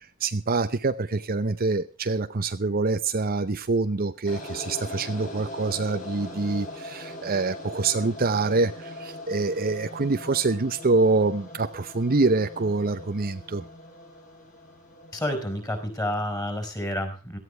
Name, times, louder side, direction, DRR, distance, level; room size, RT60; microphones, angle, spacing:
voice 1, 0.2-13.6, right 3 dB, 45° right, 10 dB, 0.8 m, -25 dB
sound 1, 4.3-16.5, left 1 dB, 40° left, 6.2 m, -41 dB
voice 2, 15.1-17.4, left 1 dB, 15° left, 6 dB, 4.9 m, -29 dB
17.5 x 14.5 x 3.4 m, 0.36 s
head